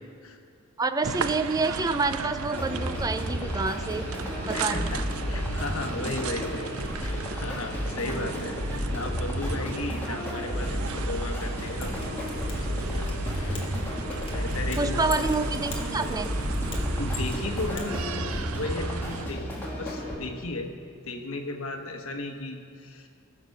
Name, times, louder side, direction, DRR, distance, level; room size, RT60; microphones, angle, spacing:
voice 1, 0.8-4.0 4.5-4.9 8.0-8.3 14.8-16.3, right 3 dB, 20° right, 10 dB, 0.4 m, -28 dB
sound 1, 1.0-19.3, right 5 dB, 80° right, 0.5 m, -36 dB
sound 2, 2.5-20.1, equal, 10° left, 2.1 m, -32 dB
voice 2, 4.5-5.0 5.3-8.6 8.9-12.1 12.6-13.7 14.3-15.3 16.9-19.5 19.8-20.7 21.1-23.1, left 2 dB, 80° left, 4 dB, 1.2 m, -35 dB
Mechanisms, 11.7-17.8 18.1-18.2, left 1 dB, 25° left, 1.8 m, -38 dB
18.0 x 6.8 x 5.3 m, 2.3 s
head